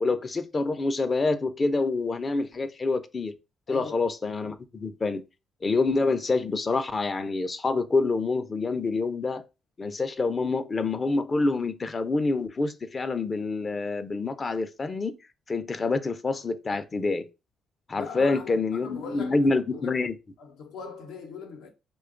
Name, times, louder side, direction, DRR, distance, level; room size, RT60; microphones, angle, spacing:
voice 1, 0.0-3.3 3.7-5.2 5.6-9.4 9.8-15.2 15.5-17.3 17.9-20.2, left 3 dB, 35° left, 0.4 m, -27 dB
voice 2, 3.7-4.0 17.9-20.0 20.4-21.7, left 5 dB, 80° left, 0.7 m, -40 dB
2.9 x 2.3 x 3.7 m
cardioid pair, 90°, 0 cm